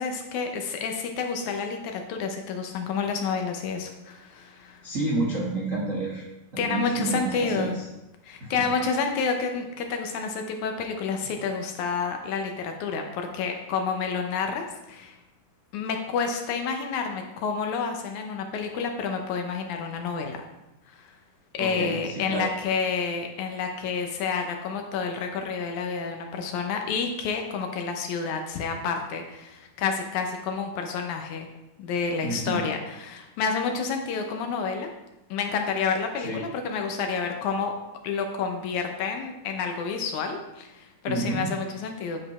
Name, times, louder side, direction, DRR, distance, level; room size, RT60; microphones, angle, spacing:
voice 1, 0.0-4.8 6.6-7.8 8.2-15.2 15.7-20.4 20.9-21.1 21.5-31.5 31.8-34.9 35.3-37.7 38.0-42.2, left 5 dB, 75° left, 4 dB, 1.9 m, -29 dB
voice 2, 4.8-6.2 6.5-7.8 8.4-8.7 21.6-22.5 32.2-32.6 36.2-36.4 41.1-41.5, right 2 dB, 90° right, -5 dB, 0.7 m, -30 dB
10.0 x 4.8 x 4.2 m, 0.95 s
omnidirectional pair, 3.9 m